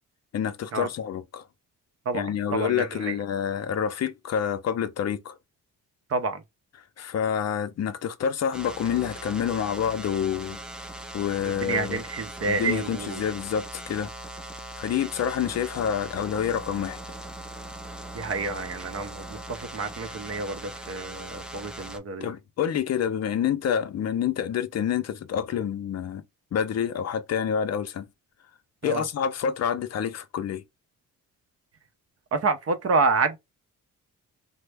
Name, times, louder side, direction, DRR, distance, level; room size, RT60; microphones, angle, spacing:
voice 1, 0.3-1.4 2.1-5.3 7.0-10.6 11.1-12.0 12.4-14.1 14.8-17.0 22.2-26.2 26.5-28.1 28.8-30.6, left 8 dB, 50° left, 0.5 m, -28 dB
voice 2, 2.1-3.2 6.1-6.4 11.4-13.2 18.1-22.3 28.8-29.0 32.3-33.4, right 4 dB, 45° right, 0.6 m, -28 dB
sound 1, 8.5-22.0, right 1 dB, 5° right, 0.3 m, -40 dB
3.2 x 2.0 x 3.3 m
cardioid pair, 110°, 34 cm